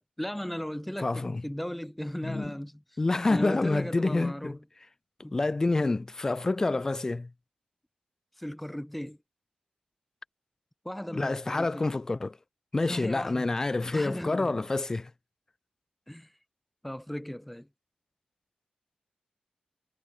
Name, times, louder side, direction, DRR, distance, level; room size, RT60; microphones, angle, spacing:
voice 1, 0.0-2.8 3.3-4.6 5.2-5.4 8.4-9.2 10.8-11.9 12.9-13.6 13.9-14.6 16.1-16.3 16.8-17.7, equal, 5° left, 4.2 m, -36 dB
voice 2, 1.0-1.4 2.2-2.5 3.0-4.6 5.3-7.3 11.1-12.4 12.7-15.1, left 2 dB, 20° left, 0.5 m, -28 dB
wide cardioid pair, 135°, 3 cm